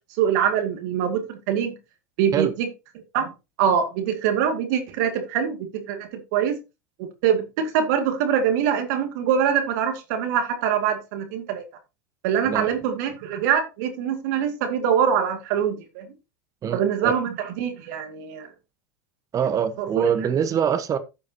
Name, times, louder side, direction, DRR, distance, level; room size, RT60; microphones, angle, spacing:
voice 1, 0.2-1.7 2.2-2.5 3.1-3.3 3.6-6.6 7.2-11.6 12.2-16.1 16.7-18.5 19.8-20.0, right 8 dB, 70° right, 2.2 m, -24 dB
voice 2, 16.6-17.1 19.3-21.0, right 8 dB, 35° right, 1.3 m, -24 dB
14.5 x 5.7 x 2.9 m
hypercardioid pair, 95°, 10 cm